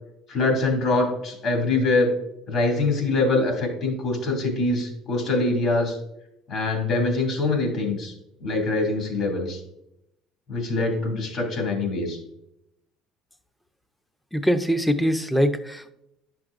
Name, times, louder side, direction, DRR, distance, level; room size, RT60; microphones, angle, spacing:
voice 1, 0.3-2.1 2.5-6.0 6.5-8.1 8.4-9.6 10.5-12.2, left 2 dB, 55° left, 1 dB, 2.4 m, -24 dB
voice 2, 14.3-15.9, equal, 5° left, 10 dB, 0.6 m, -22 dB
10.5 x 6.0 x 2.5 m, 0.82 s
cardioid pair, 105°, 0 cm